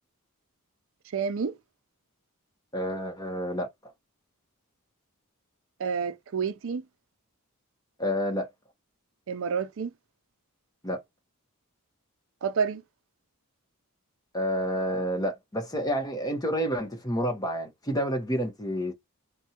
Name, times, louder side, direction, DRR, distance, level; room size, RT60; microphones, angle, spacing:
voice 1, 1.1-1.5 5.8-6.8 9.3-9.9 12.4-12.8, right 6 dB, 60° right, 0.5 m, -29 dB
voice 2, 2.7-3.7 8.0-8.5 10.8-11.0 14.3-18.9, equal, 15° left, 1.0 m, -29 dB
4.4 x 2.2 x 2.8 m
head